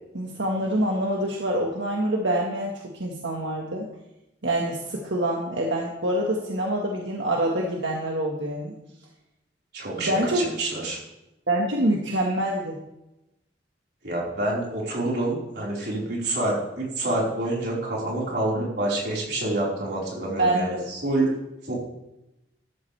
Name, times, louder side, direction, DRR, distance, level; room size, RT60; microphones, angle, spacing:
voice 1, 0.1-3.9 4.4-8.7 10.0-10.5 11.5-12.8 20.4-20.8, right 1 dB, 85° right, -1 dB, 1.7 m, -26 dB
voice 2, 9.7-11.0 14.0-21.3 21.7-21.8, right 2 dB, 60° right, -5 dB, 4.7 m, -27 dB
13.5 x 13.0 x 3.4 m, 0.92 s
head